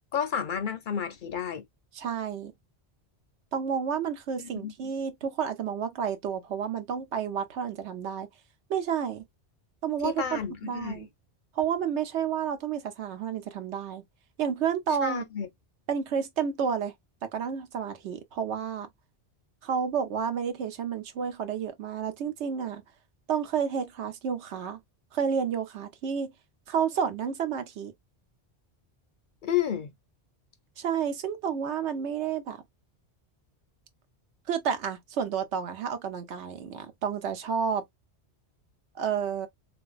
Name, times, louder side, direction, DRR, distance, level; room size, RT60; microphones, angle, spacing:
voice 1, 0.1-1.6 4.4-4.7 10.0-11.1 15.0-15.5 29.4-29.9, left 8 dB, 60° left, 0.6 m, -31 dB
voice 2, 1.9-2.5 3.5-8.3 8.7-9.2 9.8-11.1 11.6-14.0 14.4-15.2 15.9-16.9 17.2-18.9 19.6-22.8 23.3-24.8 25.1-26.3 26.7-27.9 30.8-32.6 34.5-37.8 38.9-39.5, right 7 dB, 90° right, 1.0 m, -30 dB
3.5 x 2.6 x 2.3 m
omnidirectional pair, 1.1 m